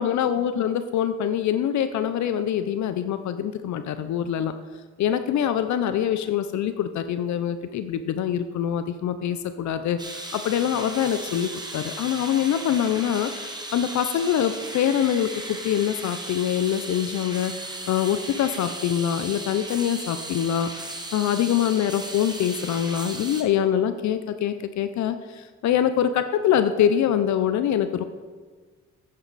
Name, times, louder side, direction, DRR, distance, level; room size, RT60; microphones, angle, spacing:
voice 1, 0.0-4.5 5.0-10.0 10.3-20.7 21.1-28.0, left 9 dB, 70° left, 10 dB, 0.6 m, -24 dB
sound 1, 10.0-23.4, right 2 dB, 15° right, 1.4 m, -36 dB
9.6 x 9.4 x 4.1 m, 1.5 s
cardioid pair, 90°, 30 cm